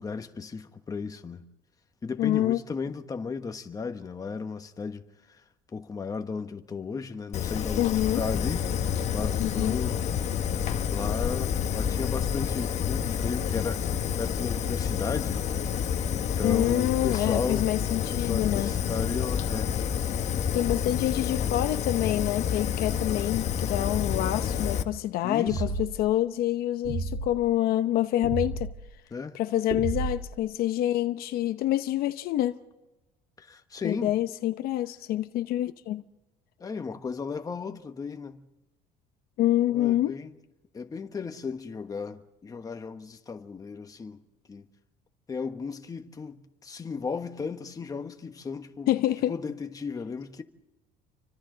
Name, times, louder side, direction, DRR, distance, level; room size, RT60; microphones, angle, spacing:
voice 1, 0.0-1.4 2.0-5.0 5.7-7.9 8.1-8.6 9.1-10.0 10.9-15.4 16.1-17.7 18.1-19.7 25.2-25.6 29.1-29.4 33.4-34.1 36.6-38.4 39.7-40.3 40.7-44.2 44.5-44.6 45.3-48.9 49.3-50.4, left 5 dB, 20° left, 1.3 m, -35 dB
voice 2, 2.2-2.6 7.8-8.2 9.4-9.8 16.4-18.8 20.5-28.7 29.3-32.6 33.8-36.0 39.4-40.2 48.9-49.3, left 13 dB, 60° left, 0.8 m, -27 dB
Fire, 7.3-24.8, left 8 dB, 40° left, 1.4 m, -29 dB
sound 1, 25.5-26.1 26.8-27.3 28.2-28.7 29.7-30.4, right 3 dB, 60° right, 4.0 m, -31 dB
30.0 x 25.0 x 3.9 m
cardioid pair, 140°, 17 cm